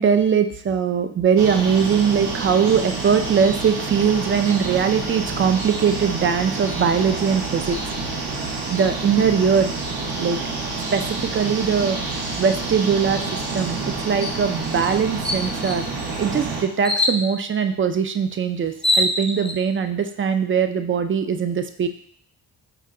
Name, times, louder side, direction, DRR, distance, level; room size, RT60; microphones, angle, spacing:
voice 1, 0.0-7.8 8.7-9.7 10.2-10.4 10.9-12.0 12.4-13.2 13.5-15.8 16.2-21.9, right 7 dB, 35° right, 9 dB, 0.4 m, -21 dB
sound 1, 1.4-16.6, right 3 dB, 85° right, 0.9 m, -28 dB
sound 2, 14.2-14.4 14.8-14.9 15.2-15.8 16.8-17.2 18.3-18.4 18.7-19.6, left 1 dB, 15° left, 0.6 m, -22 dB
4.6 x 2.2 x 3.7 m, 0.64 s
cardioid pair, 70°, 40 cm